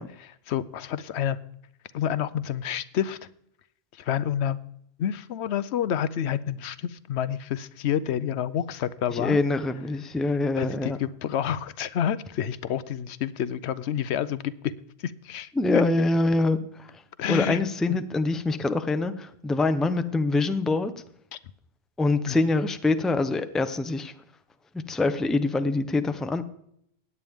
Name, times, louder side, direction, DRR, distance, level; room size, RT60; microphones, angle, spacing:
voice 1, 0.2-1.4 1.9-3.2 4.0-4.6 5.0-9.4 10.6-14.7 15.0-15.8 17.2-17.6 17.9-18.0 21.3-21.4 22.3-22.4, left 9 dB, 85° left, 16 dB, 0.9 m, -29 dB
voice 2, 9.1-11.0 15.6-16.9 17.3-20.9 22.0-24.1 24.9-26.4, left 2 dB, ahead, 10 dB, 0.5 m, -25 dB
16.5 x 9.7 x 3.6 m, 0.72 s
omnidirectional pair, 1.1 m